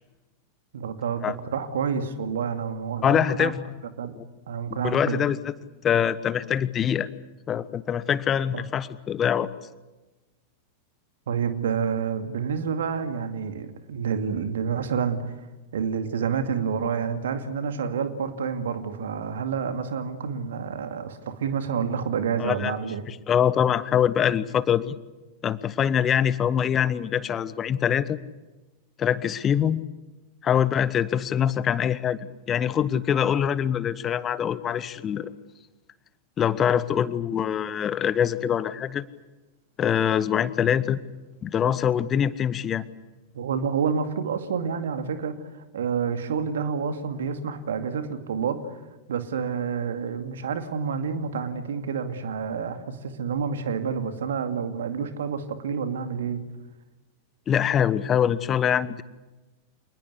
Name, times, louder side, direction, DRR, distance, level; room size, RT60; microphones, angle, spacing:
voice 1, 0.7-3.5 4.0-4.2 4.5-5.2 8.5-8.6 11.3-15.4 15.7-23.0 43.3-45.4 45.7-48.8 49.1-56.4, right 6 dB, 65° right, 8 dB, 2.3 m, -28 dB
voice 2, 3.0-3.6 4.2-4.3 4.8-5.5 5.8-7.1 7.5-9.5 22.4-22.7 23.1-24.9 25.4-28.2 29.0-29.8 30.4-32.2 32.5-35.3 36.4-39.0 39.8-41.0 41.4-42.8 57.5-59.0, left 9 dB, 25° left, 17 dB, 1.1 m, -24 dB
27.5 x 20.0 x 8.4 m, 1.1 s
figure-of-eight pair, 90°, 0 cm